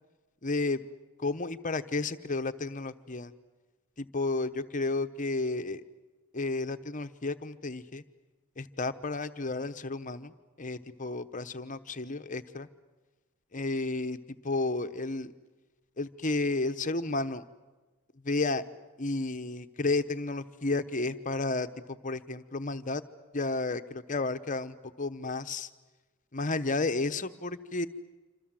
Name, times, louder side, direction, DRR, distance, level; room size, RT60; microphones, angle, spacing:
voice 1, 0.4-0.8 1.2-3.3 4.0-5.8 6.3-8.0 8.6-10.3 10.6-12.7 13.5-14.2 14.4-15.3 16.0-17.4 18.2-18.6 19.0-23.0 23.3-25.7 26.3-27.9, left 3 dB, 35° left, 10 dB, 1.0 m, -32 dB
27.0 x 26.0 x 7.6 m, 1.2 s
head